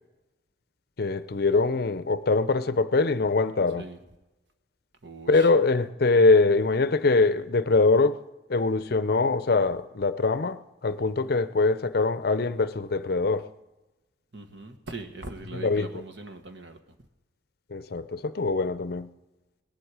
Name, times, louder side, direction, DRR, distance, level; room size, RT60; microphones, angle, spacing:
voice 1, 1.0-3.8 5.3-8.2 8.5-13.5 15.5-15.9 17.7-19.1, left 3 dB, 55° left, 0.5 m, -23 dB
voice 2, 5.0-5.5 14.3-16.8, right 3 dB, 70° right, 1.4 m, -41 dB
18.0 x 11.0 x 4.9 m
head